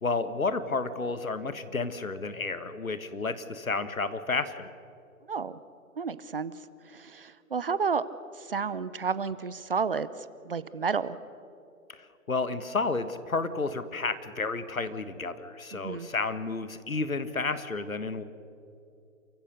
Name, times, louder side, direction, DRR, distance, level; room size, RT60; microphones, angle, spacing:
voice 1, 0.0-4.7 12.3-18.2, left 3 dB, 75° left, 12 dB, 1.6 m, -31 dB
voice 2, 5.3-5.6 6.0-6.5 6.8-8.0 8.4-10.1 10.4-11.2 15.7-16.1, right 5 dB, 40° right, 16 dB, 0.7 m, -31 dB
29.0 x 15.5 x 6.6 m, 2.7 s
figure-of-eight pair, 140°, 42 cm